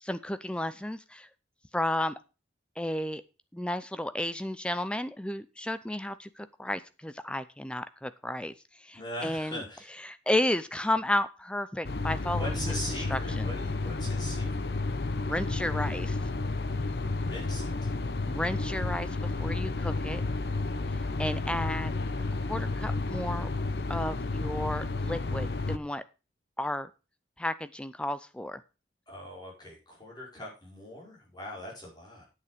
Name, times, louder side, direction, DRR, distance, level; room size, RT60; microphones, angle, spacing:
voice 1, 0.0-1.3 1.7-2.1 2.8-3.2 3.5-8.5 8.8-9.6 10.0-12.7 13.1-13.5 15.2-16.2 18.3-19.1 19.4-20.2 21.2-21.9 22.5-23.5 23.9-26.0 26.6-26.9 27.4-28.6, left 1 dB, 5° left, 13 dB, 0.5 m, -32 dB
voice 2, 8.9-9.9 12.3-14.7 17.2-17.9 29.1-32.2, left 1 dB, 25° left, -4 dB, 5.5 m, -41 dB
sound 1, 11.8-25.8, left 3 dB, 60° left, 0.8 m, -31 dB
9.6 x 8.4 x 5.0 m, 0.31 s
head